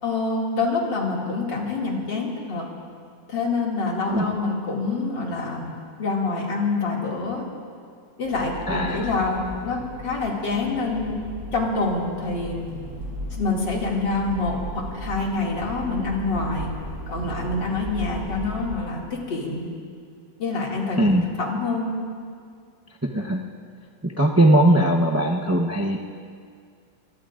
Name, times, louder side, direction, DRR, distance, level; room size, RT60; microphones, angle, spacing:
voice 1, 0.0-2.7 3.3-5.7 6.0-7.4 8.2-11.2 11.5-12.7 13.3-16.7 17.1-19.7 20.4-21.1 21.4-22.0, left 3 dB, 80° left, -3 dB, 3.1 m, -26 dB
Accelerating revving vroom, 8.2-18.7, right 1 dB, 55° right, 6.4 m, -36 dB
voice 2, 8.7-9.1 21.0-21.2 23.1-23.4 24.0-26.0, right 1 dB, 25° right, 1 dB, 0.3 m, -19 dB
24.0 x 21.5 x 2.5 m, 2.2 s
omnidirectional pair, 1.9 m